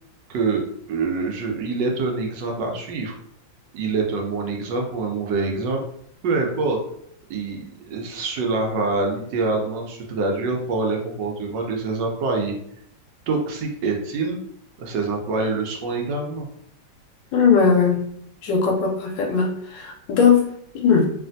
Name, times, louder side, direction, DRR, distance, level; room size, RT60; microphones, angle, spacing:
voice 1, 0.3-3.1 3.7-5.8 6.2-6.8 7.3-12.6 13.3-14.4 14.8-16.5, right 3 dB, 75° right, 1 dB, 1.2 m, -25 dB
voice 2, 17.3-18.1 18.4-21.1, left 6 dB, 75° left, 2 dB, 1.2 m, -19 dB
3.2 x 2.5 x 2.5 m, 0.69 s
omnidirectional pair, 2.1 m